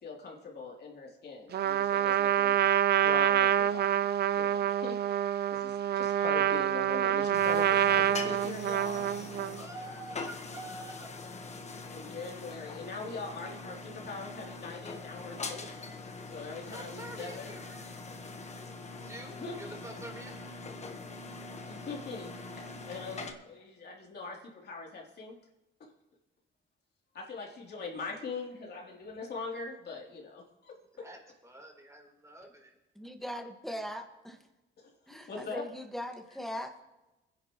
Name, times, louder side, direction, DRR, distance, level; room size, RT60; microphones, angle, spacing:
voice 1, 0.0-2.6 3.0-5.0 5.2-9.7 11.9-17.6 19.4-19.5 21.6-22.3 22.6-25.4 27.1-30.4 34.8-35.0 35.3-35.6, left 4 dB, 55° left, -1 dB, 3.2 m, -42 dB
Trumpet, 1.5-9.6, right 10 dB, 55° right, 0.5 m, -27 dB
sound 1, 7.3-23.3, left 3 dB, 35° left, 1.3 m, -43 dB
voice 2, 9.6-11.1 16.7-18.1 18.5-20.3 30.9-32.8, right 1 dB, 15° right, 1 dB, 3.8 m, -47 dB
voice 3, 33.0-34.4 35.1-36.8, equal, ahead, 5 dB, 1.7 m, -40 dB
21.0 x 10.5 x 3.1 m, 1.0 s
cardioid pair, 90°, 20 cm